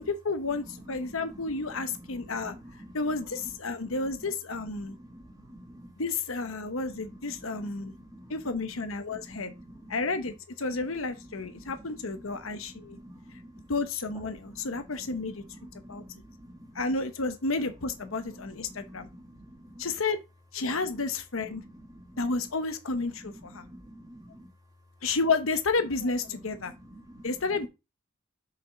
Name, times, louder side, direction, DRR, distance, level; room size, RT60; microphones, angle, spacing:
voice 1, 0.0-2.5 2.9-5.0 6.0-7.9 8.3-9.5 9.9-13.0 13.7-15.4 15.7-16.0 16.7-19.1 19.8-20.2 20.5-21.6 22.2-23.7 25.0-26.7 27.2-27.7, left 3 dB, 90° left, 1.1 m, -31 dB
voice 2, 4.8-5.9 7.8-8.3 9.3-9.6 9.8-10.0 11.6-11.7 12.8-13.7 15.8-16.1 16.4-16.8 18.7-19.7 21.9-22.0 23.6-24.5 26.9-27.3, equal, 20° right, 1.6 m, -49 dB
6.3 x 5.6 x 4.0 m
head